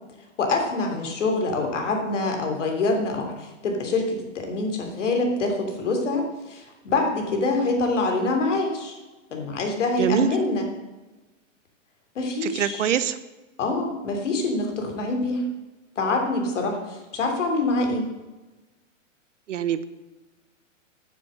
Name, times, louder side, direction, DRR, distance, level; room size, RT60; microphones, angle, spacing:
voice 1, 0.4-9.0 9.3-10.6 12.1-12.8 13.6-15.5 15.9-18.1, left 2 dB, 65° left, 3 dB, 3.3 m, -25 dB
voice 2, 10.0-10.3 12.4-13.2 19.5-19.9, right 9 dB, 70° right, 13 dB, 1.0 m, -24 dB
9.5 x 7.7 x 7.7 m, 1.1 s
hypercardioid pair, 175°, 39 cm